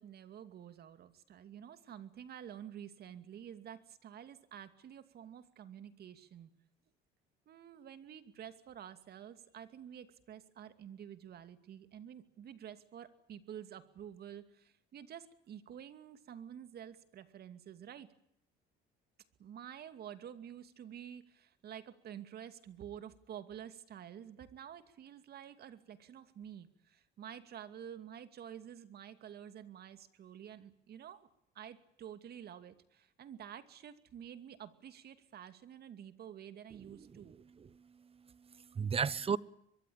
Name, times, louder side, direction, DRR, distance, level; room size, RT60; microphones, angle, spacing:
voice 1, 0.0-6.5 7.5-18.1 19.4-31.3 31.5-37.4, right 9 dB, 55° right, 2.6 m, -50 dB
voice 2, 36.9-37.2 37.7-39.4, right 6 dB, 30° right, 1.1 m, -36 dB
23.5 x 22.5 x 8.8 m
cardioid pair, 105°, 20 cm